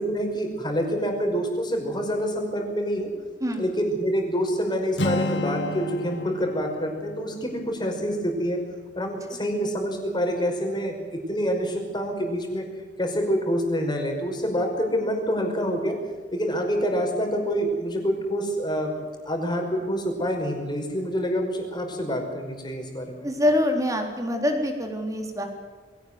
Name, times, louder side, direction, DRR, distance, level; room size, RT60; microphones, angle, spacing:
voice 1, 0.0-3.1 3.6-8.6 9.0-10.9 11.3-12.6 13.0-16.0 16.3-18.9 19.3-23.3, equal, 25° left, 3 dB, 5.3 m, -26 dB
Acoustic guitar, 5.0-8.9, left 1 dB, 75° left, 1.6 m, -32 dB
voice 2, 23.2-25.5, left 1 dB, 20° right, 4 dB, 3.8 m, -25 dB
22.0 x 17.5 x 7.9 m, 1.5 s
head